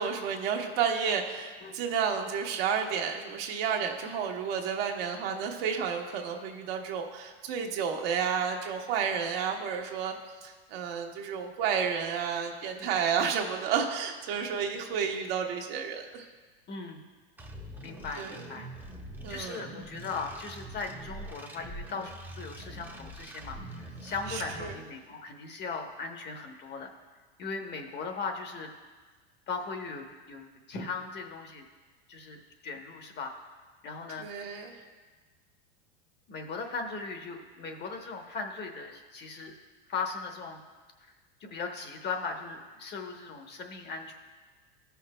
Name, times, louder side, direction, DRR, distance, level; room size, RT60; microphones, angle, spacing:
voice 1, 0.0-10.1 10.4-16.2 18.2-18.4 19.2-19.7 24.3-24.7 34.2-34.7, right 7 dB, 65° right, 2 dB, 1.2 m, -31 dB
voice 2, 16.7-17.0 17.8-18.7 19.3-26.9 27.4-28.7 29.5-31.6 32.1-33.3 33.8-34.3 36.3-39.5 39.9-40.6 41.0-41.1 41.4-44.1, left 4 dB, 35° left, 4 dB, 0.9 m, -38 dB
sound 1, 17.4-24.7, right 1 dB, 5° right, 0.7 m, -44 dB
14.5 x 5.7 x 2.2 m, 1.4 s
hypercardioid pair, 105°, 32 cm